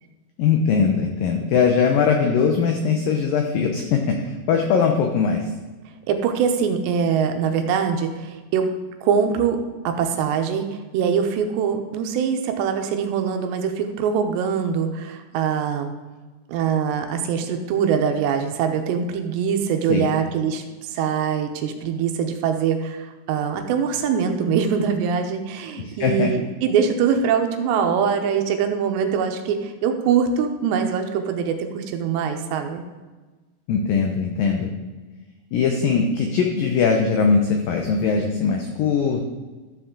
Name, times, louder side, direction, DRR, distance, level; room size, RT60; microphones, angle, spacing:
voice 1, 0.4-5.5 19.9-20.1 25.9-26.3 33.7-34.7 35.5-39.2, left 5 dB, 90° left, 3 dB, 1.9 m, -20 dB
voice 2, 6.1-8.7 9.0-9.6 9.8-15.9 16.5-32.8, right 7 dB, 80° right, 5 dB, 2.9 m, -23 dB
13.0 x 7.1 x 3.7 m, 1.3 s
omnidirectional pair, 5.0 m